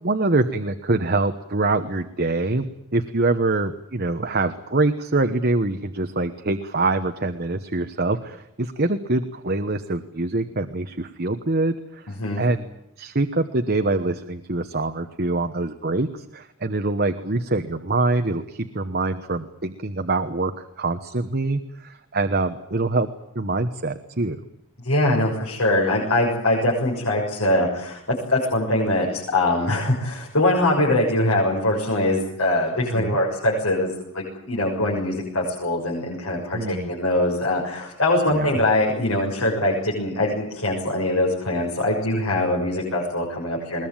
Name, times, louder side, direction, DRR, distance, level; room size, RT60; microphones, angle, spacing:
voice 1, 0.0-2.7 2.9-12.6 13.0-23.1 23.3-24.4 32.9-33.2 36.5-36.9 38.3-38.6, right 2 dB, 45° right, 8 dB, 1.1 m, -24 dB
voice 2, 24.8-43.9, left 1 dB, 70° left, -3 dB, 6.8 m, -22 dB
21.5 x 20.5 x 9.0 m, 0.80 s
head